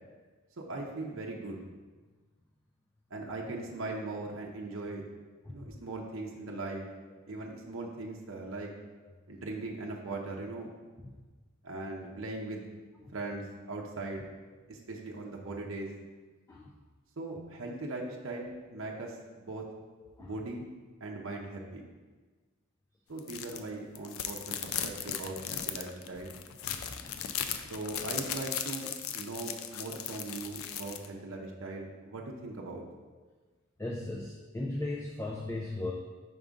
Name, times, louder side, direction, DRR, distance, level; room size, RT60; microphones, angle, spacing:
voice 1, 0.6-1.6 3.1-5.0 5.5-6.9 7.3-8.7 9.3-10.7 11.6-12.7 13.1-14.2 14.7-15.9 17.2-19.6 20.2-20.6 21.0-21.8 23.1-26.4 27.7-32.8, right 2 dB, 65° right, -1 dB, 0.7 m, -39 dB
voice 2, 5.4-5.8 7.1-7.3 9.0-9.2 11.0-11.2 13.0-13.1 14.5-14.6 16.5-16.7 18.8-19.0 19.5-19.6 20.0-20.4 25.6-25.8 26.2-26.3 26.6-27.3 28.8-28.9 32.2-32.3 33.1-33.3 33.8-35.9, left 2 dB, 15° left, -1 dB, 0.4 m, -40 dB
sound 1, 23.2-23.6 23.9-31.0, left 9 dB, 75° left, 0.4 m, -37 dB
5.3 x 3.6 x 5.2 m, 1.3 s
head